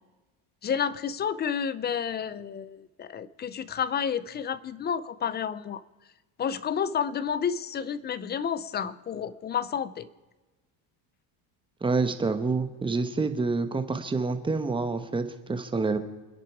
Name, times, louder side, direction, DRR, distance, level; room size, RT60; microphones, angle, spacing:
voice 1, 0.6-5.8 6.4-10.1, left 7 dB, 20° left, 17 dB, 0.5 m, -30 dB
voice 2, 11.8-16.0, right 3 dB, 10° right, 8 dB, 1.1 m, -27 dB
28.0 x 10.5 x 4.8 m, 1.2 s
cardioid pair, 160°, 46 cm